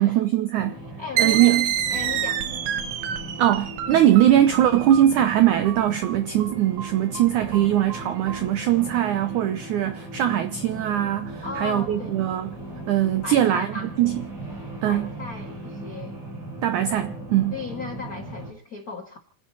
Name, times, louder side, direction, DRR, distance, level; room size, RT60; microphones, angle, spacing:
voice 1, 0.0-0.8 1.2-1.7 3.4-12.5 12.9-13.7 14.0-14.2 14.8-15.1 16.6-17.6, right 12 dB, 90° right, 1.7 m, -21 dB
sound 1, 0.6-18.5, right 1 dB, 45° right, 5.5 m, -38 dB
voice 2, 1.0-1.6 1.9-2.4 11.4-12.2 13.2-13.9 14.9-16.2 17.5-19.2, left 4 dB, 80° left, 0.8 m, -36 dB
sound 2, 1.2-8.4, right 10 dB, 65° right, 2.1 m, -28 dB
29.5 x 10.0 x 4.1 m
omnidirectional pair, 4.7 m